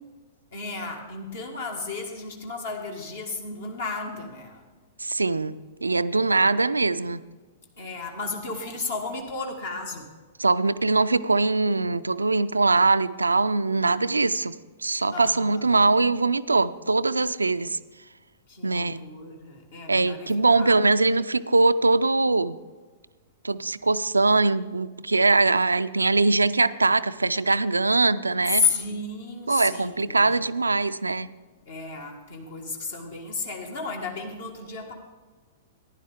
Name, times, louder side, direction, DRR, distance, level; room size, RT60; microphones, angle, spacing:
voice 1, 0.5-4.6 7.8-10.1 15.1-15.7 18.5-20.8 28.5-30.3 31.7-34.9, left 4 dB, 60° left, 2 dB, 1.6 m, -32 dB
voice 2, 5.0-7.2 10.4-14.6 14.8-17.8 18.6-19.0 19.9-22.6 23.4-28.7 29.5-31.3, right 3 dB, 80° right, 14 dB, 0.4 m, -22 dB
15.0 x 10.5 x 3.5 m, 1.4 s
figure-of-eight pair, 105°, 0 cm